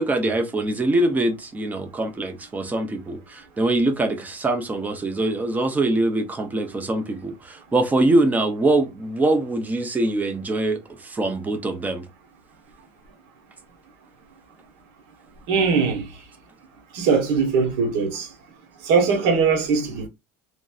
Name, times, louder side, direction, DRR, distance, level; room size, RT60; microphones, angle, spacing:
voice 1, 0.0-12.1, right 2 dB, 10° right, 0.5 m, -23 dB
voice 2, 15.5-16.1 16.9-18.3 18.8-20.1, right 5 dB, 70° right, 1.1 m, -20 dB
3.1 x 2.6 x 2.3 m
cardioid pair, 155°, 14 cm